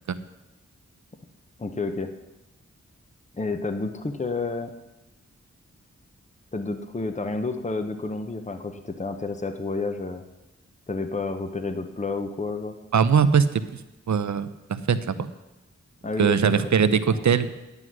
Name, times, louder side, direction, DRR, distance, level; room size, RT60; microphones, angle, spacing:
voice 1, 1.6-2.1 3.3-4.7 6.5-10.2 10.9-12.7 16.0-17.4, left 3 dB, 25° left, 7 dB, 0.8 m, -30 dB
voice 2, 12.9-13.6 14.1-15.3 16.2-17.5, right 6 dB, 75° right, 13 dB, 0.7 m, -21 dB
9.7 x 9.6 x 6.2 m, 1.0 s
wide cardioid pair, 70°, 29 cm